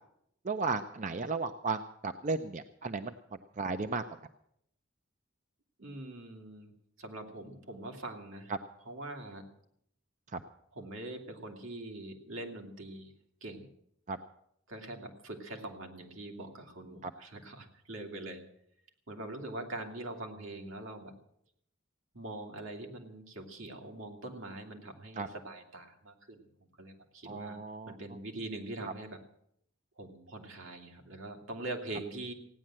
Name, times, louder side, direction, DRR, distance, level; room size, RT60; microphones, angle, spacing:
voice 1, 0.4-3.1 3.6-4.0 10.3-10.4 14.1-14.2 17.0-17.1 25.2-25.3 27.3-27.9, right 4 dB, 40° right, 9 dB, 0.6 m, -34 dB
voice 2, 5.8-6.7 7.0-8.5 8.8-9.4 10.7-13.1 13.4-13.7 14.7-18.4 19.1-21.1 22.1-27.6 27.9-29.2 30.0-32.3, right 2 dB, 80° right, 2 dB, 2.5 m, -43 dB
16.5 x 9.9 x 7.5 m, 0.73 s
head